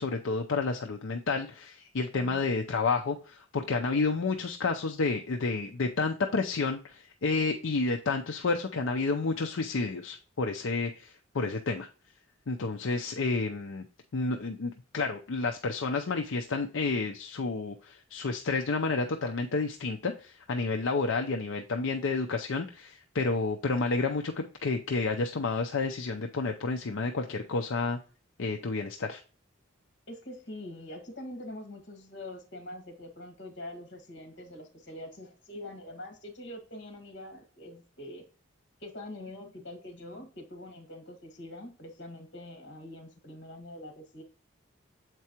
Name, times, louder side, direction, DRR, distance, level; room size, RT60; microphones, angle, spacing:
voice 1, 0.0-11.9 12.5-13.8 14.1-28.0 28.4-29.2, left 3 dB, 75° left, 4 dB, 0.6 m, -30 dB
voice 2, 30.1-38.2 38.8-44.2, left 1 dB, 55° left, 4 dB, 1.8 m, -44 dB
7.4 x 4.6 x 2.9 m, 0.38 s
head